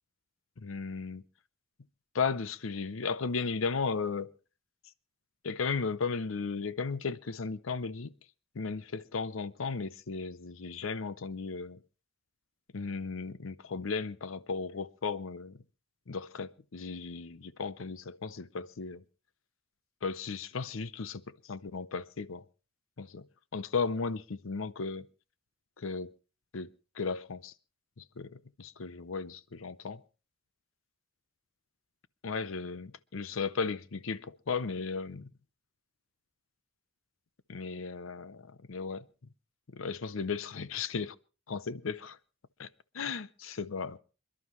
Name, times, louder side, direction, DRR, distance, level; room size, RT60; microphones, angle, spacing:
voice 1, 0.6-1.2 2.1-4.3 5.4-8.1 8.6-11.8 12.7-15.5 16.1-19.0 20.0-22.4 23.0-23.2 23.5-25.1 25.8-26.1 26.5-26.7 27.0-27.5 28.0-30.0 32.2-35.3 37.5-39.0 39.7-41.1 41.5-42.2 42.6-42.7 42.9-44.0, left 5 dB, 70° left, 0.6 m, -35 dB
27.5 x 11.5 x 3.1 m
head